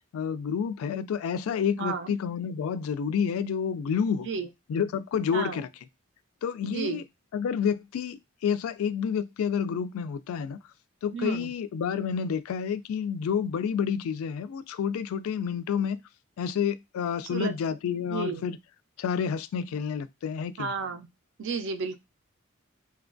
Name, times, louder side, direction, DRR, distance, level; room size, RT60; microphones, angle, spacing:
voice 1, 0.1-4.3 4.7-5.7 6.4-7.0 7.3-10.6 11.0-16.0 16.4-18.6 19.0-20.7, left 7 dB, 75° left, 0.3 m, -29 dB
voice 2, 1.7-2.1 4.2-4.5 5.3-5.6 6.6-7.0 11.1-11.5 17.3-17.5 18.0-18.5 20.6-21.1 21.4-22.0, right 5 dB, 60° right, 0.4 m, -32 dB
2.8 x 2.2 x 2.5 m
head